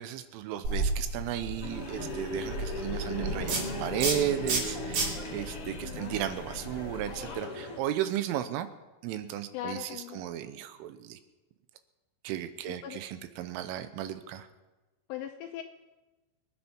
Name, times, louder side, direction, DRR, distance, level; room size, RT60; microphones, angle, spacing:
voice 1, 0.0-8.7 9.0-11.2 12.2-14.5, right 11 dB, 80° right, 9 dB, 3.4 m, -34 dB
sound 1, 0.6-7.3, right 2 dB, 55° right, 5.1 m, -34 dB
sound 2, 1.6-7.8, left 3 dB, 50° left, 1.8 m, -38 dB
voice 2, 5.8-6.2 9.5-10.2 12.7-13.0 15.1-15.6, left 11 dB, 80° left, 4 dB, 2.5 m, -40 dB
25.0 x 9.9 x 4.5 m, 1.1 s
omnidirectional pair, 5.8 m